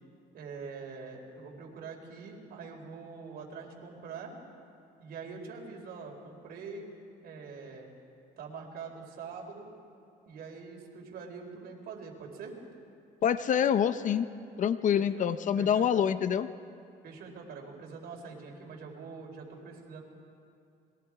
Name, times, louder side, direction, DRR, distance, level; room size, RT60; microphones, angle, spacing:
voice 1, 0.3-4.3 5.0-6.9 7.2-7.9 8.4-9.7 10.3-12.6 15.0-15.3 15.6-16.1 17.0-20.0, right 5 dB, 65° right, 1 dB, 4.3 m, -44 dB
voice 2, 13.2-14.3 14.6-16.5, left 8 dB, 50° left, 13 dB, 0.7 m, -26 dB
27.5 x 22.0 x 4.9 m, 2.6 s
cardioid pair, 110°, 17 cm